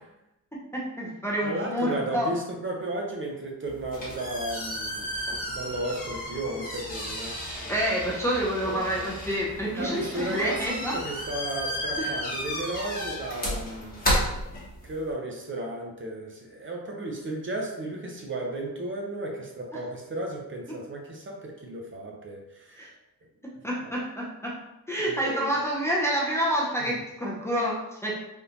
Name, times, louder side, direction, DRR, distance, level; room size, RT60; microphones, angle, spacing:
voice 1, 0.5-2.3 7.7-11.0 12.0-12.2 22.8-22.9 23.4-24.6 24.9-28.2, equal, 5° left, -4 dB, 0.5 m, -28 dB
voice 2, 1.4-5.0 5.5-7.8 8.6-9.1 9.8-14.0 14.8-22.9 23.8-24.0 25.0-25.6 26.8-26.9, right 1 dB, 35° right, 0 dB, 0.7 m, -34 dB
sound 1, 3.7-15.1, equal, 25° left, 1.1 m, -33 dB
3.5 x 2.4 x 2.8 m, 0.87 s
cardioid pair, 115°, 36 cm